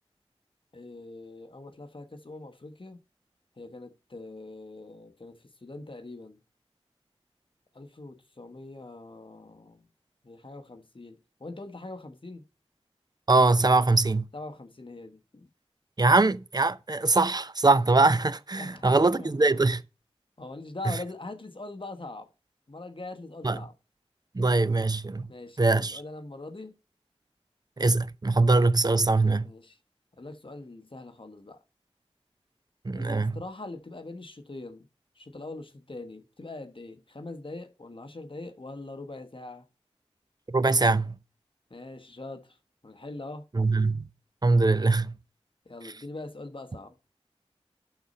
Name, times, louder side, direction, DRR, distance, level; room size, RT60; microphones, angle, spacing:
voice 1, 0.7-3.0 3.6-6.4 7.7-9.8 10.2-12.4 14.3-15.5 18.6-19.3 20.4-22.3 22.7-23.7 25.3-26.8 29.4-29.8 30.2-31.6 32.9-34.9 35.2-39.7 41.7-42.6 42.8-43.5 45.6-46.9, left 2 dB, 50° left, 1.1 m, -42 dB
voice 2, 13.3-14.3 16.0-19.8 20.9-21.0 23.4-23.6 24.3-25.3 25.6-26.0 27.8-29.5 32.8-33.4 40.5-41.1 43.5-44.0 44.4-45.1, right 3 dB, 40° right, 0.6 m, -22 dB
11.5 x 4.1 x 4.2 m
wide cardioid pair, 45°, 11 cm